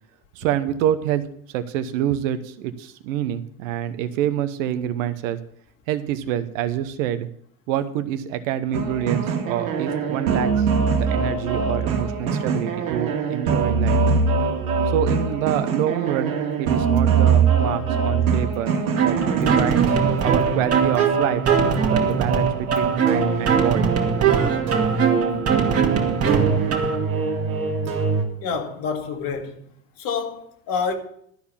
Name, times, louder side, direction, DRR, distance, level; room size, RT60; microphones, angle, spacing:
voice 1, 0.3-1.2 1.5-5.4 5.9-7.3 7.7-14.0 14.9-18.7 19.0-19.8 20.2-21.4 21.8-23.9, right 11 dB, 70° right, 1.0 m, -27 dB
sound 1, 8.7-28.2, right 5 dB, 90° right, 2.0 m, -23 dB
sound 2, 19.0-27.0, right 6 dB, 35° right, 2.1 m, -22 dB
voice 2, 28.4-29.7 30.0-30.9, left 5 dB, 55° left, 2.3 m, -28 dB
12.5 x 4.8 x 7.1 m
hypercardioid pair, 95°, 40 cm